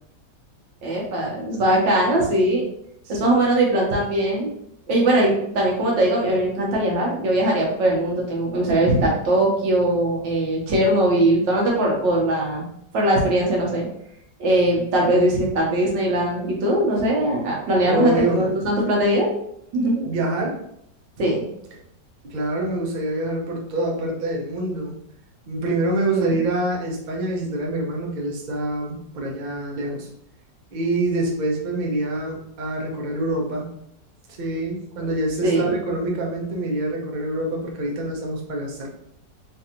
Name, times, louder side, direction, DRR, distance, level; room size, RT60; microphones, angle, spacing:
voice 1, 0.8-2.6 3.1-4.5 4.9-12.6 12.9-13.9 14.4-19.3 19.7-20.1 21.2-21.4 26.1-26.3 35.4-35.8, right 1 dB, 90° right, -2 dB, 1.7 m, -20 dB
voice 2, 3.0-3.4 17.9-18.5 20.0-20.6 22.2-24.9 25.5-30.1 30.7-33.7 34.3-38.9, right 1 dB, 60° right, -1 dB, 0.4 m, -26 dB
3.8 x 2.6 x 2.8 m, 0.74 s
omnidirectional pair, 1.9 m